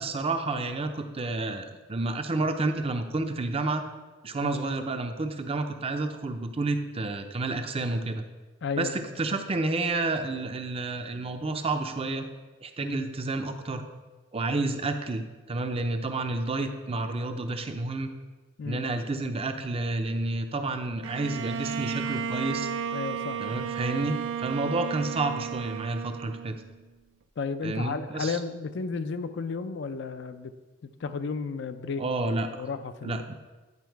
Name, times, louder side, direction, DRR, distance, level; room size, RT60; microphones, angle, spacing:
voice 1, 0.0-3.8 4.2-8.2 8.7-12.2 12.6-13.9 14.3-18.1 18.6-22.7 23.4-26.6 27.6-28.4 32.0-32.7 33.0-33.3, right 2 dB, 30° right, 7 dB, 0.5 m, -30 dB
voice 2, 8.6-9.0 12.8-12.9 18.6-18.9 22.9-23.7 27.4-30.5 31.0-32.0 32.6-33.2, left 5 dB, 65° left, 10 dB, 0.4 m, -33 dB
Bowed string instrument, 21.0-26.8, right 7 dB, 75° right, 0.4 m, -33 dB
9.7 x 4.6 x 4.6 m, 1.2 s
head